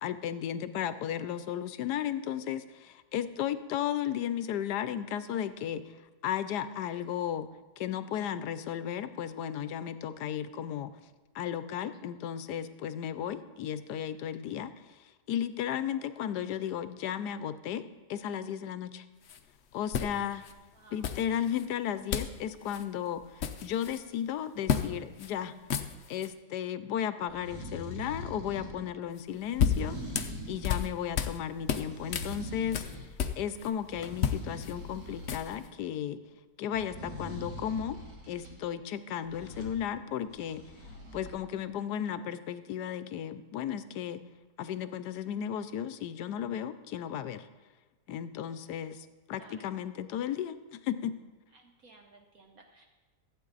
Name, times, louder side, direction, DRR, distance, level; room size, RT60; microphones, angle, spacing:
voice 1, 0.0-5.9 6.2-7.5 7.8-10.9 11.3-14.7 15.0-17.8 18.1-19.0 19.7-20.4 20.9-25.5 26.1-30.0 30.5-32.8 33.4-36.2 36.6-38.0 38.3-40.6 41.1-44.2 44.6-47.5 48.1-51.2, left 9 dB, 75° left, 12 dB, 1.2 m, -34 dB
sound 1, 19.2-19.4 19.9-20.5 21.0-21.7 22.1-22.4 22.7-22.8 23.2-24.0 24.7-24.9 25.2-25.3 25.6-26.3 29.2-31.4 31.7-33.7 34.0-35.7, left 8 dB, 60° left, 0.7 m, -32 dB
voice 2, 20.7-21.1 49.3-49.7 51.5-52.9, right 3 dB, 60° right, 2 dB, 1.3 m, -57 dB
sound 2, 27.3-28.8 29.5-30.9 31.6-33.1 33.5-35.6 36.7-38.5 39.2-39.8 40.2-41.3, left 1 dB, 80° right, 3.2 m, -43 dB
15.0 x 8.8 x 4.0 m, 1.2 s
omnidirectional pair, 1.8 m